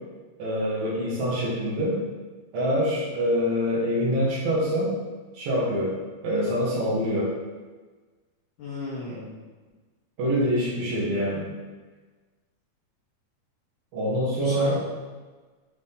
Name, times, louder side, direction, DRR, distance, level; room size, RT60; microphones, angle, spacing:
voice 1, 0.4-2.0 2.5-5.0 5.4-6.0 6.2-7.4 9.1-9.2 10.2-11.5 13.9-14.8, equal, 70° right, -7 dB, 3.4 m, -25 dB
voice 2, 8.6-9.3 14.4-14.8, left 3 dB, 75° left, -5 dB, 1.9 m, -35 dB
8.5 x 3.8 x 3.7 m, 1.3 s
omnidirectional pair, 4.5 m